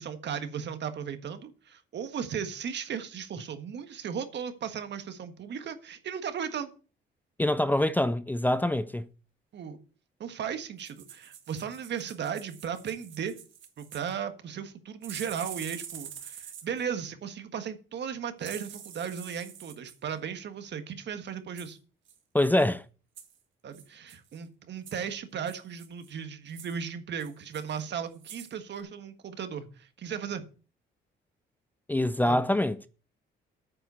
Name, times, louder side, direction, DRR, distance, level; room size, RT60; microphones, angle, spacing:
voice 1, 0.0-6.7 9.5-9.8 10.2-13.4 13.8-21.8 23.6-30.4 32.2-32.4, right 7 dB, 60° right, 1.6 m, -36 dB
voice 2, 7.4-9.1 22.3-22.8 31.9-32.9, left 1 dB, 10° left, 0.5 m, -25 dB
sound 1, 10.8-14.1 15.0-16.8 18.4-20.0 21.6-21.7 22.1-22.2 22.4-22.7 23.1-23.4 23.7-24.4 24.8-25.0 25.5-26.1 26.5-26.8 27.2-27.8 28.1-28.5 28.8-28.9, right 8 dB, 75° right, 2.3 m, -46 dB
9.3 x 5.7 x 8.2 m
cardioid pair, 90°, 20 cm